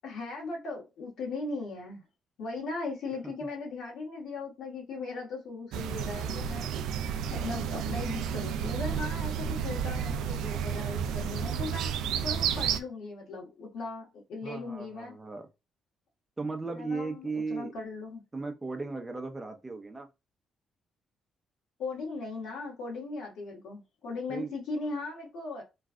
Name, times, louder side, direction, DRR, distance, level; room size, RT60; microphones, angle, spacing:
voice 1, 0.0-2.0 2.4-6.7 7.3-11.9 12.2-15.2 16.7-18.2 21.8-25.6, left 3 dB, 80° left, 1.5 m, -38 dB
sound 1, 5.7-12.8, right 8 dB, 85° right, 0.3 m, -31 dB
voice 2, 7.3-7.8 14.4-15.5 16.4-17.7 18.3-20.1 24.3-24.5, right 3 dB, 20° right, 0.7 m, -36 dB
3.2 x 2.4 x 2.4 m
cardioid pair, 90°, 0 cm